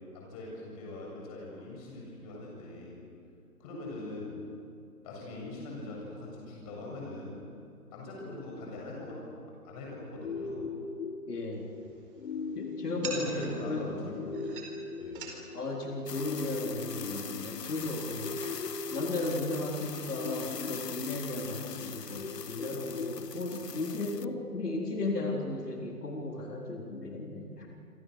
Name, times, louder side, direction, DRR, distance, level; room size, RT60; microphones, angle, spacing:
voice 1, 0.1-3.0 3.6-4.4 5.0-7.4 7.9-9.2 9.6-10.7 13.0-14.2 15.0-15.2, left 2 dB, 25° left, -2 dB, 7.5 m, -42 dB
sound 1, 10.2-26.2, left 4 dB, 50° left, 2.0 m, -41 dB
voice 2, 11.3-11.7 12.6-14.4 15.5-18.6 18.9-27.7, left 2 dB, 75° left, 0 dB, 4.0 m, -35 dB
sound 2, 11.5-18.8, right 4 dB, 35° right, 4.7 m, -48 dB
sound 3, 16.1-24.2, left 7 dB, 90° left, 0.9 m, -43 dB
27.5 x 27.0 x 6.6 m, 2.6 s
figure-of-eight pair, 155°, 47 cm